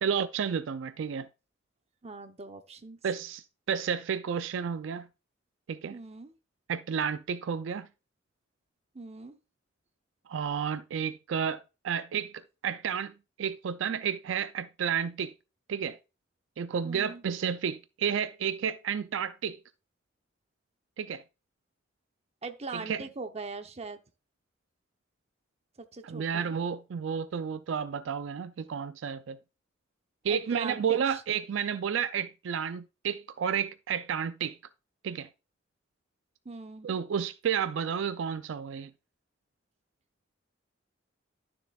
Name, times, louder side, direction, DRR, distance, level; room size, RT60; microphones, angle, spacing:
voice 1, 0.0-1.3 3.0-5.1 5.7-6.0 6.7-7.9 10.3-15.3 15.7-16.0 16.6-19.6 21.0-21.2 22.7-23.0 26.0-29.4 30.2-34.6 35.0-35.3 36.8-38.9, right 7 dB, 75° right, 0.4 m, -31 dB
voice 2, 2.0-3.0 5.9-6.3 8.9-9.4 16.8-17.2 22.4-24.0 25.8-26.5 30.3-31.2 36.4-36.9, right 3 dB, 35° right, 0.8 m, -41 dB
11.5 x 6.8 x 2.3 m
head